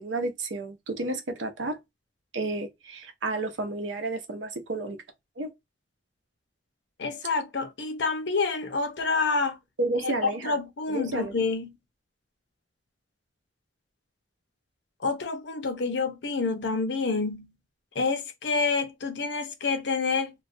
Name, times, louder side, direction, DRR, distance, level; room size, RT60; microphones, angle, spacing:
voice 1, 0.0-1.8 2.3-5.0 5.4-5.5 9.8-10.6 10.9-11.4, right 2 dB, 85° right, 0.7 m, -31 dB
voice 2, 7.0-9.6 10.0-11.7 15.0-17.5 17.9-20.3, left 4 dB, 70° left, 0.6 m, -28 dB
2.3 x 2.2 x 2.5 m
head